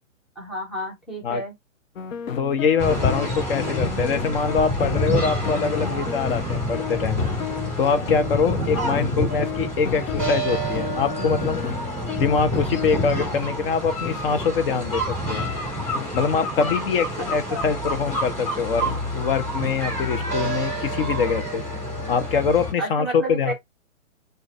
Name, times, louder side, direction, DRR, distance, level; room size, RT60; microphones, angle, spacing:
voice 1, 0.4-1.5 8.6-9.0 9.3-9.4 17.2-17.7 22.8-23.5, right 1 dB, ahead, 0.5 m, -31 dB
sound 1, 2.0-13.5 14.1-14.2 14.7-14.8 15.3-15.4 16.0-16.1 16.6-16.7 17.3-17.4 18.1-18.2 18.9-19.0 19.7-19.8 20.4-20.6, left 8 dB, 75° left, 0.8 m, -33 dB
voice 2, 2.3-7.2 7.8-11.6 12.2-15.5 16.1-21.6 22.1-23.5, left 5 dB, 45° left, 0.9 m, -24 dB
sound 2, 2.8-22.7, equal, 15° left, 2.9 m, -28 dB
6.2 x 2.6 x 2.6 m
hypercardioid pair, 135°, 40 cm